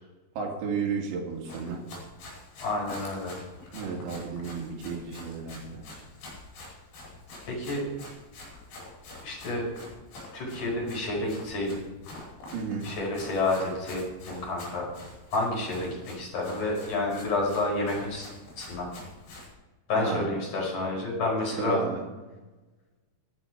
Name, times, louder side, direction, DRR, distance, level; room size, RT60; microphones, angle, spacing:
voice 1, 0.4-1.9 3.7-5.8 12.5-12.9 20.0-20.3 21.6-22.0, right 5 dB, 85° right, 0 dB, 4.4 m, -33 dB
Run, 1.3-19.5, left 2 dB, 85° left, 7.2 m, -46 dB
voice 2, 2.6-3.4 7.5-7.8 9.2-9.7 10.3-11.8 12.8-14.9 15.3-18.3 18.6-18.9 19.9-21.8, left 2 dB, 45° left, -3 dB, 6.3 m, -29 dB
13.5 x 11.0 x 4.9 m, 1.2 s
omnidirectional pair, 5.0 m